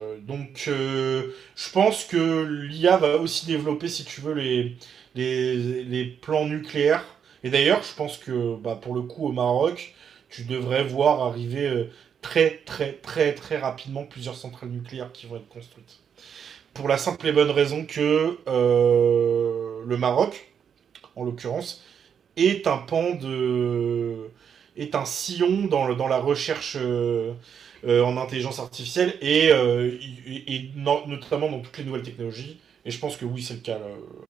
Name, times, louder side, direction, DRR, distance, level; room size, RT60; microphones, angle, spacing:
voice 1, 0.0-4.8 5.2-7.1 7.4-9.9 10.3-11.9 12.2-15.4 16.3-16.5 16.8-20.4 21.2-21.8 22.4-24.3 24.8-27.4 27.8-32.5 32.9-34.1, right 8 dB, 30° right, 0.3 m, -25 dB
figure-of-eight pair, 70°, 0 cm